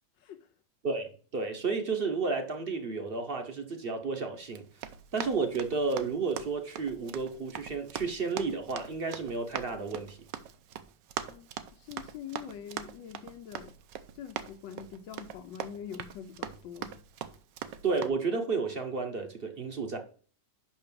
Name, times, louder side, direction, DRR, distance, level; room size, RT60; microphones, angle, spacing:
voice 1, 0.2-0.5 11.3-13.8 14.1-17.0, left 8 dB, 80° left, 1.4 m, -44 dB
voice 2, 0.8-4.6 5.1-10.2 17.8-20.0, right 4 dB, 45° right, 0.8 m, -32 dB
Run, 4.5-18.1, right 9 dB, 80° right, 1.3 m, -42 dB
5.7 x 5.4 x 6.7 m
omnidirectional pair, 2.0 m